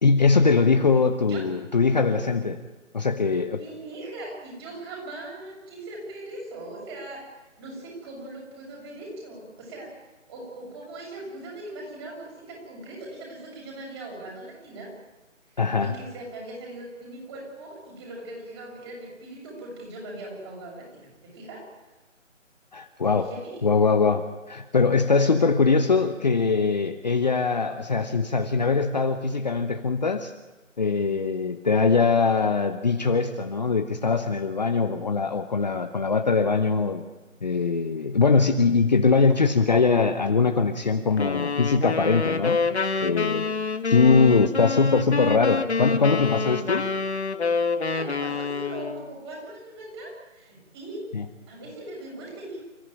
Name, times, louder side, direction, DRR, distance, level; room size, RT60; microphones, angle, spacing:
voice 1, 0.0-2.6 2.9-3.6 15.6-15.9 22.7-23.3 23.6-30.3 30.8-37.0 37.4-42.6 43.0-43.5 43.8-46.9 51.1-51.2, left 4 dB, 35° left, 7 dB, 1.0 m, -22 dB
voice 2, 0.9-1.5 3.5-10.0 10.3-14.9 15.5-21.6 23.1-23.7 47.8-51.0 51.5-52.6, right 1 dB, 20° right, -1 dB, 6.9 m, -40 dB
sound 1, 41.2-49.1, left 4 dB, 55° left, 1.8 m, -27 dB
29.0 x 15.0 x 9.1 m, 1.2 s
figure-of-eight pair, 160°, 39 cm